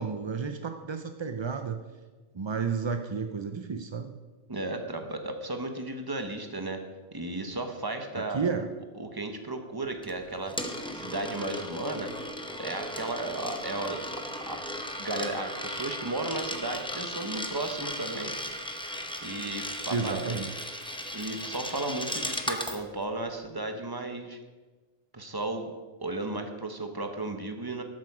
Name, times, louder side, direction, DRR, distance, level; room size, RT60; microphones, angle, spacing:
voice 1, 0.0-1.8 2.3-4.2 8.3-8.7 19.9-20.5, right 5 dB, 45° right, 6 dB, 0.3 m, -31 dB
voice 2, 4.5-6.8 7.1-8.6 8.9-12.1 12.6-14.0 14.5-14.6 15.0-18.3 19.2-20.4 21.1-24.4 25.1-25.7 26.0-27.8, right 2 dB, 20° right, 5 dB, 1.0 m, -34 dB
Coin (dropping), 10.0-22.8, left 1 dB, 5° left, 0.7 m, -36 dB
12.5 x 8.7 x 4.9 m, 1.3 s
omnidirectional pair, 1.2 m